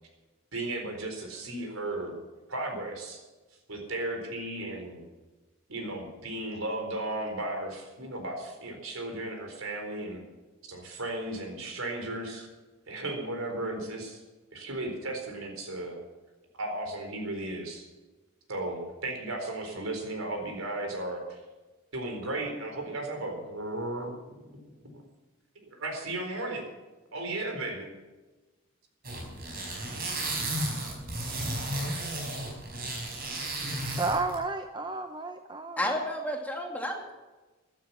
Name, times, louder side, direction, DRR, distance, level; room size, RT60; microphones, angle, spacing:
voice 1, 0.5-2.2 2.5-3.2 3.7-5.0 5.7-10.2 10.7-12.5 12.9-14.2 14.5-16.0 16.6-17.9 18.5-21.4 21.9-24.2 24.5-24.6 25.7-26.6 27.1-27.9, right 2 dB, 85° right, 3 dB, 4.2 m, -35 dB
sound 1, 29.0-34.4, right 1 dB, 45° right, 5.1 m, -33 dB
voice 2, 33.9-36.0, right 3 dB, 20° right, 6 dB, 0.6 m, -32 dB
voice 3, 35.8-37.1, left 1 dB, 5° left, 0 dB, 2.2 m, -31 dB
14.0 x 12.5 x 5.9 m, 1.2 s
head